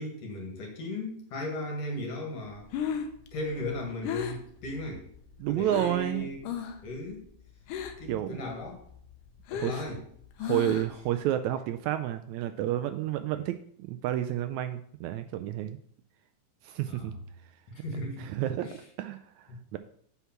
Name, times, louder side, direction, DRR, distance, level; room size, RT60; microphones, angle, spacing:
voice 1, 0.0-2.7 3.3-5.1 5.5-6.4 6.8-7.2 8.0-8.8 9.5-10.0 10.4-10.5 16.9-17.2 17.7-18.3 18.6-18.8 19.5-19.6, left 1 dB, 55° left, 1 dB, 2.7 m, -37 dB
Breathing, 2.5-6.1 6.4-6.9 7.1-8.2 8.5-11.1, left 7 dB, 90° left, 2.4 m, -36 dB
voice 2, 5.4-6.3 8.1-8.4 9.6-9.8 10.4-15.8 16.6-17.1 18.2-18.7 19.0-19.8, right 12 dB, 80° right, 9 dB, 1.8 m, -30 dB
8.1 x 5.7 x 5.8 m, 0.64 s
omnidirectional pair, 3.6 m